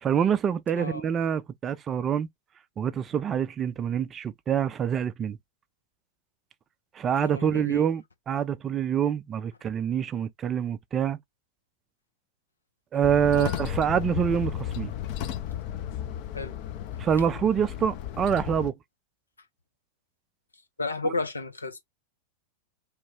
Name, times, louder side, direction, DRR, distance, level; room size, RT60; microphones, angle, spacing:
voice 1, 0.0-2.3 2.8-5.4 6.9-11.2 12.9-14.9 17.0-18.7 21.0-21.1, right 8 dB, 25° right, 0.3 m, -26 dB
voice 2, 7.2-7.9 13.3-13.5 16.3-16.6 20.8-21.8, left 3 dB, 80° left, 0.7 m, -32 dB
sound 1, 13.0-18.7, left 10 dB, 45° left, 0.6 m, -34 dB
3.0 x 2.2 x 3.5 m
figure-of-eight pair, 90°, 0 cm